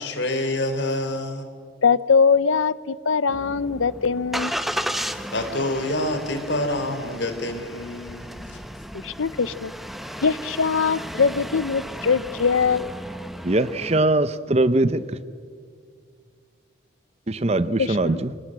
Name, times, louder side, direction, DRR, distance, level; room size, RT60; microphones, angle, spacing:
voice 1, 0.0-1.5 5.3-8.4, left 1 dB, 65° left, 3.4 m, -27 dB
voice 2, 1.8-4.5 9.0-9.7 10.2-12.9 17.8-18.2, left 5 dB, 85° left, 0.7 m, -22 dB
Engine starting, 3.3-14.0, equal, ahead, 0.9 m, -34 dB
voice 3, 13.4-15.0 17.3-18.3, right 2 dB, 30° right, 0.7 m, -21 dB
28.5 x 25.5 x 7.7 m
head